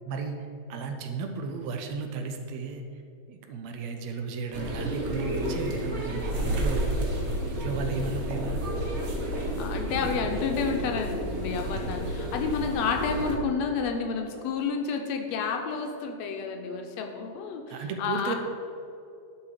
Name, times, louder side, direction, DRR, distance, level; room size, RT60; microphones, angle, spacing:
voice 1, 0.1-2.8 3.3-7.1 7.5-8.6 17.7-18.3, right 4 dB, 75° right, 5 dB, 1.8 m, -34 dB
sound 1, 4.5-13.4, right 1 dB, 45° right, 0.9 m, -30 dB
voice 2, 9.6-18.3, left 5 dB, 75° left, 4 dB, 1.8 m, -30 dB
11.5 x 5.5 x 4.9 m, 2.6 s
omnidirectional pair, 3.3 m